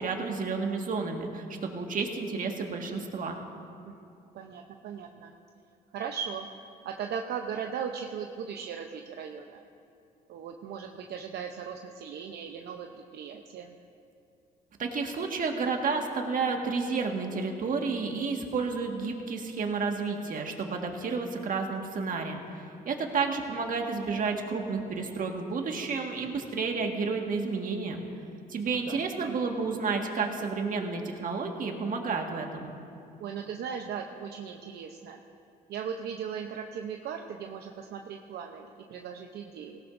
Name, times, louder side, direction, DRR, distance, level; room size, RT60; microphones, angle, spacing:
voice 1, 0.0-3.4 14.8-28.0 28.5-32.7, right 4 dB, 55° right, 2 dB, 1.7 m, -31 dB
voice 2, 4.3-5.3 5.9-6.5 6.8-9.6 10.3-13.8 28.7-29.5 33.2-35.2 35.7-39.8, right 7 dB, 70° right, 3 dB, 0.8 m, -38 dB
18.0 x 16.5 x 2.6 m, 2.6 s
cardioid pair, 80°, 17 cm